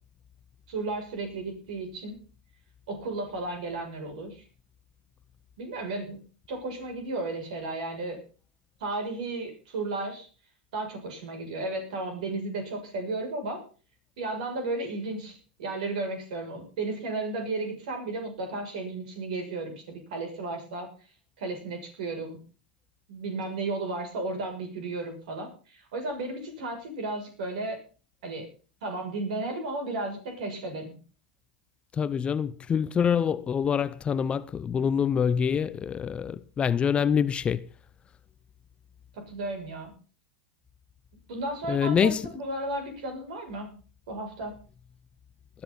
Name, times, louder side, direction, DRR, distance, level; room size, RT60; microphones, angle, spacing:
voice 1, 0.7-2.2 2.9-4.4 5.6-6.2 6.5-8.2 8.8-10.3 10.7-13.6 14.2-20.9 21.4-22.4 23.1-27.8 28.2-28.5 28.8-30.9 39.1-39.9 41.3-43.7 44.1-44.6, right 2 dB, 65° right, 7.1 m, -34 dB
voice 2, 32.0-37.6 41.7-42.2, left 7 dB, 25° left, 0.7 m, -25 dB
20.5 x 11.0 x 4.2 m
hypercardioid pair, 95°, 4 cm